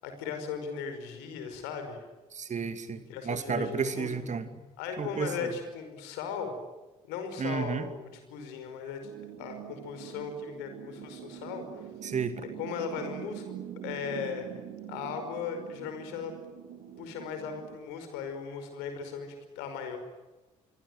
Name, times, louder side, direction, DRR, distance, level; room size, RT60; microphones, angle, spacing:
voice 1, 0.0-2.0 3.1-4.1 4.8-6.5 7.1-9.0 9.4-11.7 12.6-13.4 13.8-14.5 14.9-16.3 17.0-20.0, left 6 dB, 70° left, 7 dB, 5.3 m, -37 dB
voice 2, 2.3-4.5 5.0-5.5 7.4-7.9 12.0-12.4, right 5 dB, 40° right, 10 dB, 2.5 m, -32 dB
Underwater pads, 9.0-17.8, right 11 dB, 65° right, 2.6 m, -44 dB
27.0 x 23.5 x 9.3 m, 1.1 s
figure-of-eight pair, 45°, 18 cm